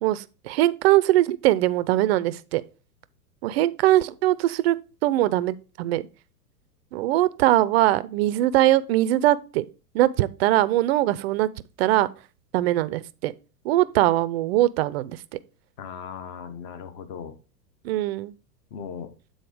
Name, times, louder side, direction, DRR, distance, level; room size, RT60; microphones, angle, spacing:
voice 1, 0.0-2.6 3.4-4.8 5.0-6.0 6.9-9.7 9.9-11.5 11.8-12.1 12.5-13.3 13.6-15.4 17.8-18.3, right 15 dB, 40° right, 0.5 m, -21 dB
voice 2, 15.8-17.3 18.7-19.1, left 7 dB, 40° left, 1.1 m, -37 dB
7.8 x 4.1 x 4.9 m
hypercardioid pair, 105°, 48 cm